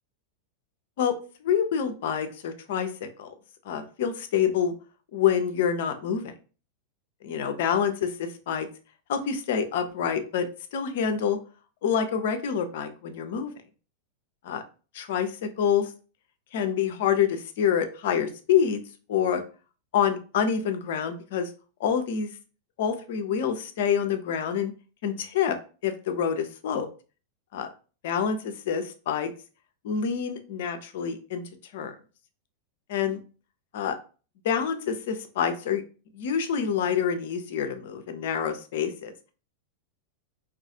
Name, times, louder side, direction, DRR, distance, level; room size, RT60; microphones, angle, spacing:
voice 1, 1.4-3.3 3.7-4.7 5.1-6.3 7.2-8.7 9.1-10.5 10.7-11.4 11.8-13.5 14.4-14.6 14.9-15.9 16.5-18.8 19.1-19.4 19.9-21.5 21.8-22.3 22.8-24.7 25.0-25.6 25.8-26.9 27.5-27.7 28.0-29.3 29.8-31.4 31.7-31.9 32.9-33.2 33.7-34.0 34.4-35.8 36.1-39.1, left 8 dB, 55° left, 8 dB, 0.4 m, -27 dB
2.3 x 2.3 x 2.6 m, 0.36 s
figure-of-eight pair, 90°, 0 cm